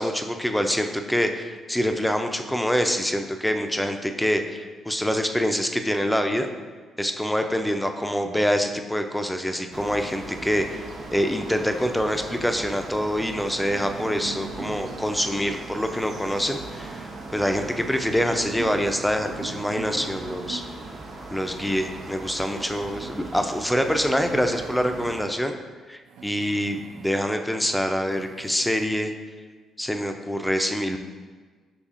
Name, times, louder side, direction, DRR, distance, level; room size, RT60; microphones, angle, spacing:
voice 1, 0.0-6.5 7.0-20.6 21.3-25.5 25.9-29.1 29.8-31.0, equal, 5° left, 5 dB, 0.4 m, -25 dB
sound 1, 9.7-25.2, right 2 dB, 55° right, 0.7 m, -39 dB
sound 2, 13.6-15.2 15.9-17.1 17.8-20.6 21.4-23.1 23.9-25.4 26.1-27.2 27.6-27.7 28.1-28.9, right 6 dB, 75° right, 0.3 m, -42 dB
5.5 x 3.4 x 2.4 m, 1.4 s
cardioid pair, 90°, 0 cm